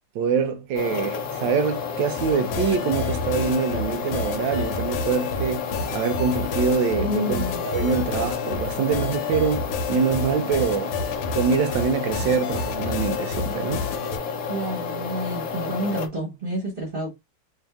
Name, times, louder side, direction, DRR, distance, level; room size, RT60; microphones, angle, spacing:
voice 1, 0.1-10.9 11.3-13.9, right 6 dB, 75° right, 1.2 m, -25 dB
sound 1, 0.7-16.1, left 6 dB, 65° left, 0.8 m, -31 dB
sound 2, 2.2-14.2, left 4 dB, 85° left, 1.6 m, -31 dB
voice 2, 7.0-7.6 14.5-17.1, right 1 dB, 30° right, 1.2 m, -29 dB
3.3 x 2.8 x 3.4 m
omnidirectional pair, 2.3 m